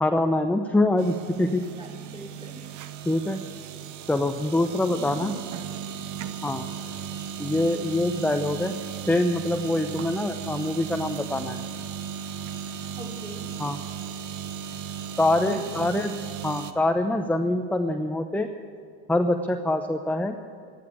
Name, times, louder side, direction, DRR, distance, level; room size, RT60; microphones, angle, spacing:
voice 1, 0.0-1.6 3.1-3.4 4.1-5.3 6.4-6.6 7.4-8.7 9.1-11.6 13.6-13.8 15.2-16.2 16.4-18.5 19.1-20.4, left 1 dB, 5° left, 6 dB, 0.8 m, -24 dB
sound 1, 1.0-16.7, right 8 dB, 60° right, 1.1 m, -36 dB
voice 2, 1.8-2.8 6.8-7.2 13.0-13.5 15.4-15.9, equal, 15° right, -2 dB, 4.3 m, -44 dB
14.0 x 10.5 x 8.3 m, 2.4 s
hypercardioid pair, 80°, 33 cm